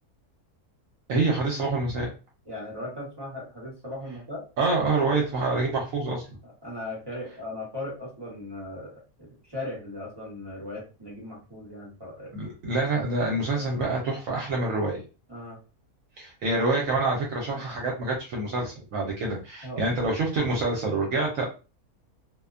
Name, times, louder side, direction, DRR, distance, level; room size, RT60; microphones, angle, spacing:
voice 1, 1.1-2.1 4.6-6.2 12.3-15.0 16.2-21.5, right 3 dB, 65° right, -1 dB, 1.0 m, -26 dB
voice 2, 2.4-4.4 6.6-12.3 13.5-13.7 15.3-15.6 19.6-19.8 20.4-20.5, left 1 dB, 20° right, -5 dB, 0.9 m, -38 dB
2.6 x 2.1 x 2.4 m, 0.32 s
omnidirectional pair, 1.6 m